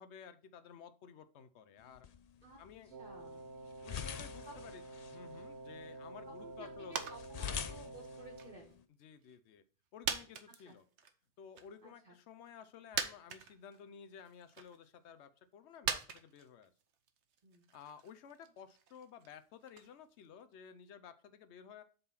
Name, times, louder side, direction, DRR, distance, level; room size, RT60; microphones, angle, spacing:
voice 1, 0.0-2.1 2.6-2.9 3.8-4.8 5.1-7.1 9.0-9.6 9.9-10.8 11.4-16.7 17.7-21.8, left 7 dB, 80° left, 12 dB, 1.0 m, -54 dB
sound 1, 1.8-8.8, left 8 dB, 50° left, 0.5 m, -47 dB
voice 2, 2.4-3.4 4.5-4.6 5.3-5.4 6.4-8.8 10.6-10.8 11.8-12.2 17.4-17.6, right 2 dB, 45° right, 0 dB, 1.4 m, -56 dB
Wind instrument woodwind instrument, 2.9-8.6, right 2 dB, 70° right, 1.3 m, -50 dB
sound 2, 6.9-7.3 7.5-8.7 9.2-9.3 10.0-11.1 11.5-11.7 12.6-12.7 12.9-13.8 14.2-14.8 15.8-19.9 20.2-20.3, right 7 dB, 85° right, 1.1 m, -41 dB
7.8 x 3.9 x 5.8 m, 0.39 s
omnidirectional pair, 1.2 m